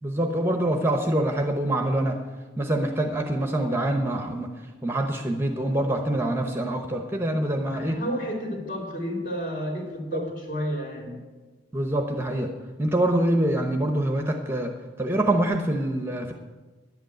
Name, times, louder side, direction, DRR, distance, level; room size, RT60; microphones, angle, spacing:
voice 1, 0.0-2.2 2.6-4.5 4.8-8.0 10.1-10.2 11.7-12.5 12.8-14.7 15.0-16.3, right 1 dB, 10° right, 4 dB, 0.8 m, -25 dB
voice 2, 7.7-11.2, equal, 45° left, 0 dB, 2.8 m, -31 dB
10.5 x 8.2 x 9.1 m, 1.3 s
head